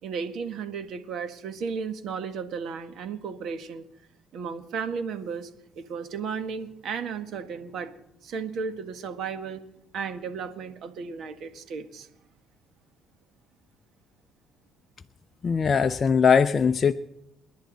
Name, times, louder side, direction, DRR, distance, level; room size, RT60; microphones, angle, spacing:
voice 1, 0.0-3.9 4.3-5.5 5.7-7.9 8.2-9.6 9.9-12.1, right 6 dB, 60° right, 8 dB, 1.7 m, -34 dB
voice 2, 15.4-16.9, left 6 dB, 35° left, 8 dB, 0.5 m, -20 dB
29.5 x 10.5 x 4.1 m, 0.87 s
cardioid pair, 105°, 0 cm